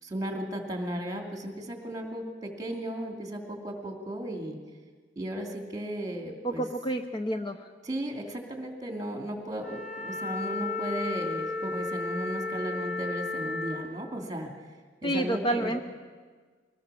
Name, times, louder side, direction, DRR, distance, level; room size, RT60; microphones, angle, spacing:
voice 1, 0.0-4.6 5.2-6.6 7.8-14.5 15.0-15.8, right 1 dB, 20° right, 2 dB, 2.9 m, -35 dB
voice 2, 6.4-7.7 15.0-15.8, right 1 dB, 25° left, 6 dB, 0.7 m, -29 dB
Wind instrument woodwind instrument, 9.6-13.9, left 3 dB, 50° left, 2.9 m, -33 dB
22.5 x 18.0 x 7.0 m, 1.5 s
head